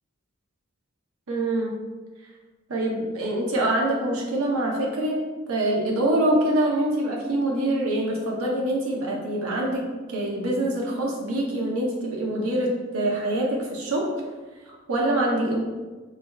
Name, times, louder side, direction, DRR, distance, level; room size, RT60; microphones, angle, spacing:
voice 1, 1.3-1.7 2.7-5.2 5.5-14.1 14.7-15.6, right 1 dB, 75° right, -2 dB, 0.8 m, -25 dB
5.7 x 3.3 x 2.3 m, 1.3 s
head